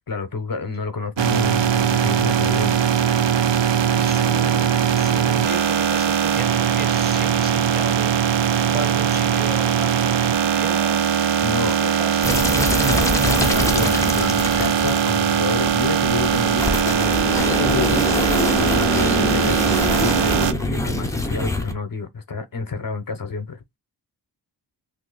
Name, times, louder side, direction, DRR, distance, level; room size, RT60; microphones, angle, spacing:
voice 1, 0.1-2.8 11.4-11.9 12.8-18.1 18.6-23.6, left 4 dB, 50° left, 0.7 m, -29 dB
sound 1, 1.2-20.5, right 8 dB, 80° right, 0.6 m, -20 dB
voice 2, 3.9-4.7 4.9-8.1 8.7-11.2 11.6-13.2, right 2 dB, 20° right, 1.1 m, -34 dB
sound 2, 12.2-21.7, left 1 dB, 5° left, 0.6 m, -24 dB
2.8 x 2.5 x 3.7 m
wide cardioid pair, 85°, 43 cm